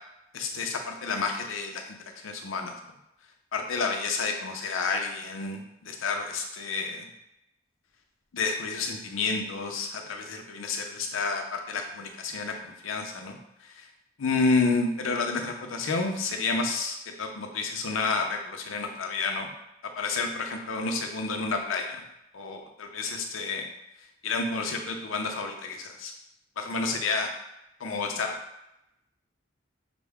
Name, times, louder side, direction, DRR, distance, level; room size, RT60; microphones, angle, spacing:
voice 1, 0.3-2.7 3.5-7.1 8.3-13.9 14.2-19.5 20.0-22.0 22.3-23.7 24.2-26.1 26.6-27.3 27.8-28.3, left 4 dB, 90° left, 3 dB, 0.6 m, -30 dB
5.9 x 2.1 x 3.4 m, 0.87 s
head